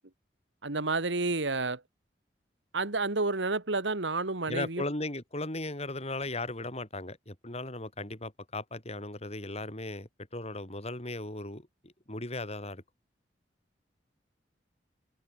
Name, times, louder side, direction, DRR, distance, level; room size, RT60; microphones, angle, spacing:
voice 1, 0.6-1.8 2.7-4.8, right 3 dB, 85° right, 2.1 m, -30 dB
voice 2, 4.5-12.8, left 2 dB, 35° left, 5.4 m, -37 dB
head